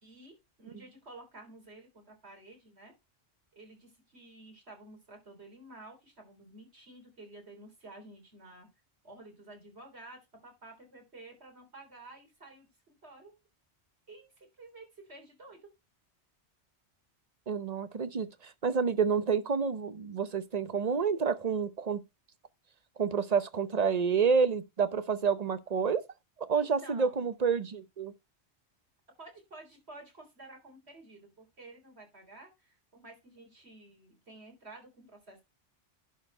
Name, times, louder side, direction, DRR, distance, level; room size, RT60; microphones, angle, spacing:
voice 1, 0.0-2.9 3.5-8.7 9.0-13.4 14.1-15.6 26.6-27.3 29.2-35.4, right 2 dB, 70° right, 3.9 m, -52 dB
voice 2, 17.5-22.0 23.0-26.0 26.4-28.1, right 6 dB, 40° right, 0.9 m, -29 dB
11.0 x 4.5 x 5.4 m
omnidirectional pair, 1.1 m